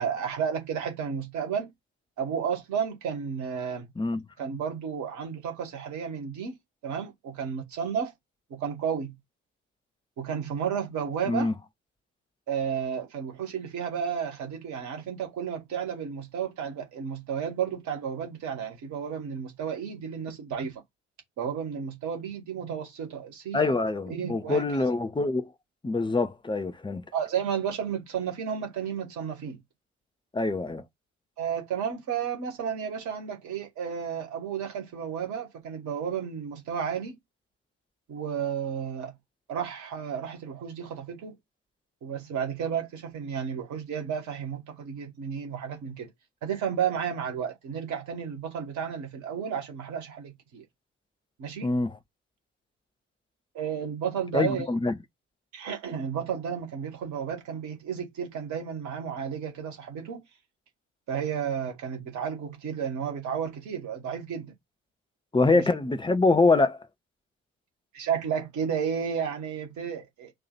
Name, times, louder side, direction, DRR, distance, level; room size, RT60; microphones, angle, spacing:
voice 1, 0.0-1.7 2.2-3.9 4.4-6.6 6.8-8.1 8.5-9.1 10.2-11.5 12.5-20.8 21.4-23.7 24.1-24.6 27.1-29.6 31.4-37.2 38.1-39.2 39.5-41.4 42.0-46.1 46.4-50.6 51.4-51.7 53.5-54.7 55.5-60.2 61.1-64.5 65.5-65.7 67.9-70.3, right 7 dB, 55° right, 2.1 m, -32 dB
voice 2, 23.5-25.5 25.8-27.0 30.3-30.8 51.6-52.0 54.3-54.9 65.3-66.8, left 3 dB, 15° left, 0.9 m, -24 dB
4.5 x 2.8 x 4.2 m
figure-of-eight pair, 45°, 35 cm